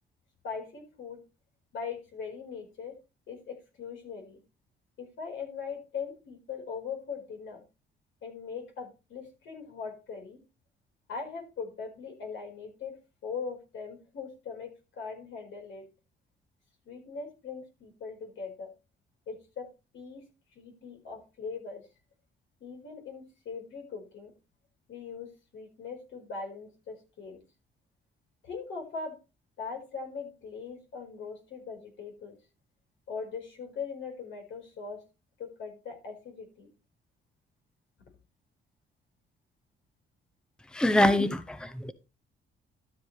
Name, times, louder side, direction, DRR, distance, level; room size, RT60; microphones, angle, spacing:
voice 1, 0.4-1.2 1.7-3.0 3.3-4.4 5.0-7.6 8.2-10.4 11.1-15.9 16.8-18.7 19.3-19.7 19.9-20.2 20.5-21.9 22.6-24.3 24.9-27.4 28.4-29.2 29.6-32.4 33.1-35.0 35.4-36.7, left 5 dB, 75° left, 4.6 m, -40 dB
voice 2, 40.7-41.9, left 1 dB, 5° left, 0.7 m, -24 dB
13.0 x 7.2 x 3.2 m
cardioid pair, 90°, 20 cm